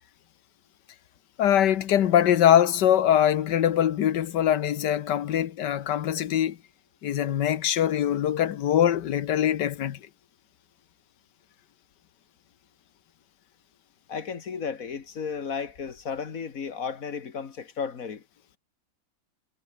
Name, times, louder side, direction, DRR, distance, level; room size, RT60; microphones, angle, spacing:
voice 1, 1.4-6.6 7.0-10.0, left 10 dB, 70° left, 1.6 m, -23 dB
voice 2, 14.1-18.2, left 6 dB, 50° left, 2.1 m, -34 dB
omnidirectional pair, 2.0 m